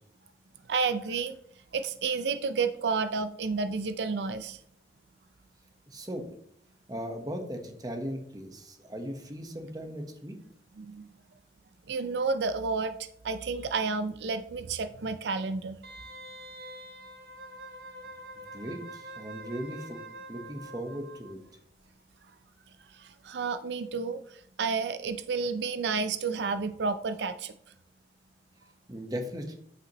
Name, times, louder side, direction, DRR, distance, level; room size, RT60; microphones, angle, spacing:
voice 1, 0.7-1.4 1.7-4.6 10.8-11.1 11.9-13.0 13.2-15.8 22.9-27.5, right 4 dB, 80° right, 11 dB, 0.4 m, -31 dB
voice 2, 5.9-6.3 6.9-10.4 18.5-20.0 20.3-21.4 28.9-29.6, equal, 20° right, 5 dB, 1.1 m, -38 dB
Wind instrument woodwind instrument, 15.8-21.4 21.7-21.8, right 1 dB, 60° right, 1.0 m, -45 dB
8.6 x 8.0 x 3.0 m, 0.67 s
head